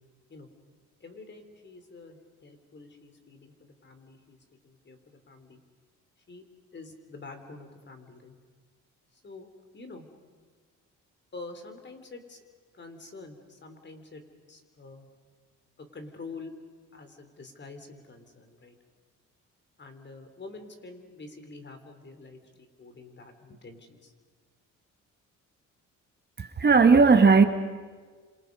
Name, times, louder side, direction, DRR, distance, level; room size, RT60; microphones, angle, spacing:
voice 1, 1.0-4.4 4.6-5.6 6.3-6.5 6.7-8.4 9.1-9.5 9.7-10.1 11.3-12.4 12.7-14.2 14.5-15.1 15.8-16.5 16.9-18.8 19.8-24.1, left 3 dB, 35° left, 7 dB, 4.0 m, -46 dB
voice 2, 26.4-27.4, right 4 dB, 35° right, 8 dB, 1.5 m, -17 dB
30.0 x 26.5 x 5.5 m, 1.5 s
cardioid pair, 90°, 30 cm